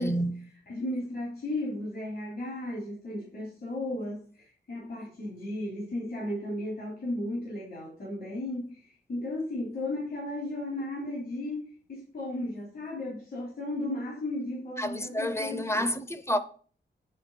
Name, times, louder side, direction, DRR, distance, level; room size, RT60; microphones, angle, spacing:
voice 1, 0.0-0.5 14.8-16.4, equal, 15° left, 0.7 m, -29 dB
voice 2, 0.7-16.0, left 1 dB, 65° left, 3.4 m, -35 dB
9.3 x 4.0 x 7.2 m
wide cardioid pair, 165°, 18 cm